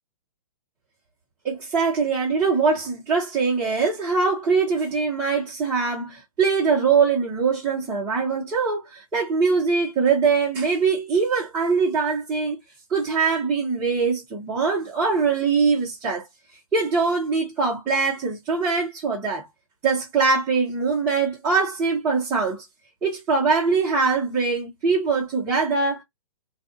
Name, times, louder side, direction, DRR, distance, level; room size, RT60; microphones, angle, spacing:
voice 1, 1.4-12.6 12.9-16.2 16.7-19.5 19.8-22.6 23.0-26.0, right 4 dB, 10° right, 0.9 m, -22 dB
2.5 x 2.3 x 2.5 m
hypercardioid pair, 155°, 18 cm